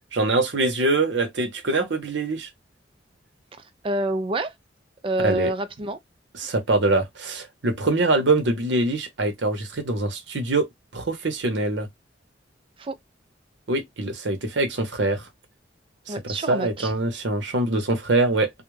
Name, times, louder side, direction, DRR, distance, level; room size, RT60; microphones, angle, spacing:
voice 1, 0.1-2.5 5.2-5.5 6.4-10.7 10.9-11.9 13.7-15.3 16.1-18.5, right 2 dB, 70° right, 0.8 m, -24 dB
voice 2, 3.8-4.5 5.0-6.0 12.8-13.0 16.1-16.9, right 2 dB, 30° right, 0.3 m, -27 dB
2.3 x 2.0 x 3.1 m
head